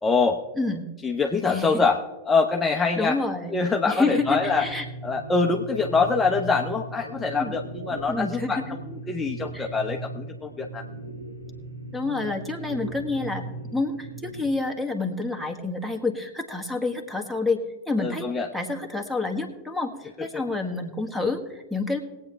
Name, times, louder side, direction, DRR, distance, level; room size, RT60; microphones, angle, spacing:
voice 1, 0.0-0.4 1.0-3.2 3.5-4.6 5.0-10.8 18.0-18.5 20.2-20.4, left 4 dB, 10° left, 1 dB, 1.0 m, -24 dB
voice 2, 0.6-0.9 1.5-1.8 3.0-4.8 7.3-7.6 8.1-8.6 9.5-9.7 11.9-18.3 18.5-22.0, left 3 dB, 5° right, 7 dB, 1.7 m, -28 dB
sound 1, 4.0-14.5, right 2 dB, 80° right, 2.2 m, -38 dB
21.0 x 8.8 x 3.4 m, 1.2 s
figure-of-eight pair, 90°, 0 cm